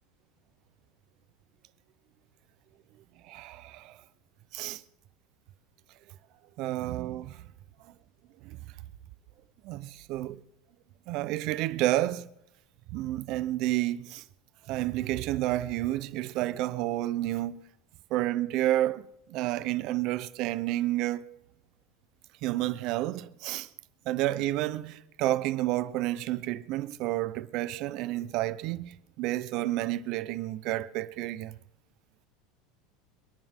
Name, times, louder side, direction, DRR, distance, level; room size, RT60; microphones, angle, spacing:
voice 1, 3.2-4.0 4.5-4.8 6.6-7.5 8.4-8.6 9.6-10.4 11.1-12.3 12.9-14.2 14.7-17.6 18.1-21.4 22.4-23.7 24.1-31.6, right 15 dB, 50° right, 0.7 m, -30 dB
28.0 x 9.4 x 3.7 m
supercardioid pair, 155°, 0 cm